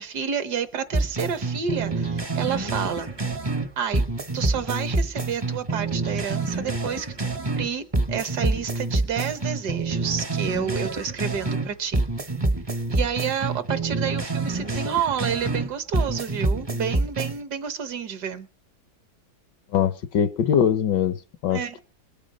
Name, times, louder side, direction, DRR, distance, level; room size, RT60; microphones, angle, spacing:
voice 1, 0.0-3.1 3.8-4.0 4.3-7.1 7.4-7.8 8.1-12.0 12.9-18.5 21.5-21.8, right 7 dB, 65° right, 1.6 m, -29 dB
sound 1, 0.9-3.7 3.9-7.7 7.9-11.7 11.9-15.7 15.9-17.4, right 2 dB, 20° right, 0.6 m, -27 dB
voice 2, 19.7-21.8, left 8 dB, 75° left, 1.5 m, -22 dB
21.5 x 7.4 x 5.2 m
omnidirectional pair, 2.0 m